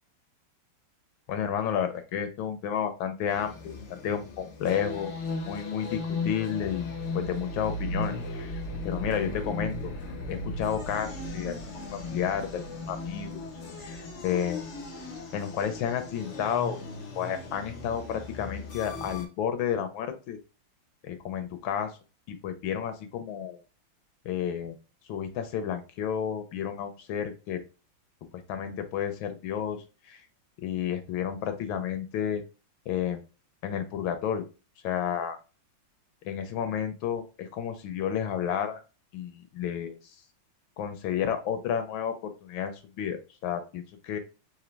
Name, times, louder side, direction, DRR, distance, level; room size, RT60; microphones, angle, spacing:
voice 1, 1.3-5.1 5.5-6.9 7.1-9.9 10.3-11.6 11.9-13.5 13.8-14.6 15.3-16.8 17.1-20.4 21.0-22.0 22.3-23.6 24.2-24.8 25.1-27.6 28.3-30.2 30.6-32.4 32.9-33.2 33.6-34.5 34.8-35.4 36.2-38.8 39.1-40.0 40.8-44.2, left 8 dB, 75° left, 8 dB, 1.5 m, -31 dB
sound 1, 3.3-19.3, left 2 dB, 50° left, 0.9 m, -37 dB
5.0 x 2.7 x 3.2 m, 0.32 s
omnidirectional pair, 2.2 m